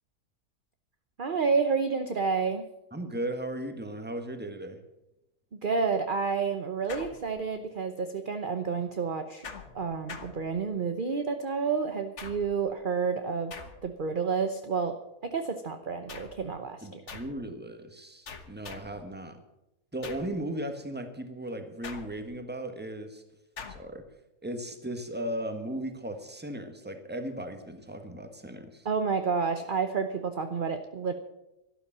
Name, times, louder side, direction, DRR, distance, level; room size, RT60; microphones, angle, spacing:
voice 1, 1.2-2.7 5.5-9.5 9.7-13.5 13.8-17.0 28.8-31.1, right 5 dB, 40° right, 7 dB, 0.9 m, -30 dB
voice 2, 2.9-4.8 16.8-19.4 19.9-23.2 23.7-24.0 24.4-28.9, right 1 dB, 5° right, 7 dB, 1.4 m, -36 dB
sound 1, 6.9-7.7 9.4-11.0 12.2-12.7 13.5-14.1 16.1-16.5 17.1-17.5 18.3-19.1 20.0-20.4 21.8-22.5 23.6-24.0, left 5 dB, 50° left, 1.5 m, -45 dB
13.0 x 12.5 x 7.4 m, 0.93 s
omnidirectional pair, 1.7 m